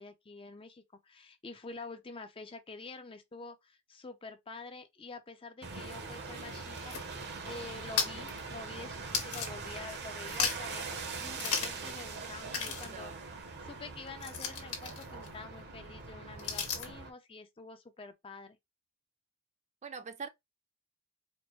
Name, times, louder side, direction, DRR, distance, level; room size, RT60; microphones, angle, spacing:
voice 1, 0.0-13.1 13.4-18.6, left 3 dB, 25° left, 0.5 m, -47 dB
sound 1, 5.6-17.1, right 4 dB, 50° right, 0.8 m, -42 dB
sound 2, 6.6-10.0 10.2-10.8 11.3-11.9 12.2-12.3 12.5-17.0, left 6 dB, 80° left, 1.4 m, -37 dB
voice 2, 12.2-13.2 19.8-20.3, right 5 dB, 30° right, 0.4 m, -45 dB
4.4 x 2.1 x 3.0 m
head